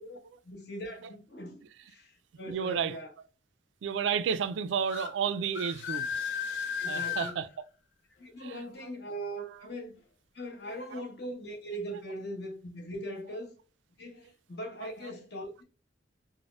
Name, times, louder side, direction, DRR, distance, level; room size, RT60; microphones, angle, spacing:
voice 1, 0.4-2.1 2.4-3.1 6.8-7.4 8.2-10.0 10.3-13.5 14.0-15.6, equal, 60° left, 1.0 m, -40 dB
voice 2, 2.5-3.0 3.8-6.1 6.9-7.5 8.4-8.6 9.4-9.6 10.7-11.0 14.8-14.9, right 7 dB, 80° right, 0.3 m, -32 dB
sound 1, 4.9-5.1 5.5-7.3, left 7 dB, 80° left, 0.6 m, -34 dB
4.1 x 2.1 x 2.3 m
head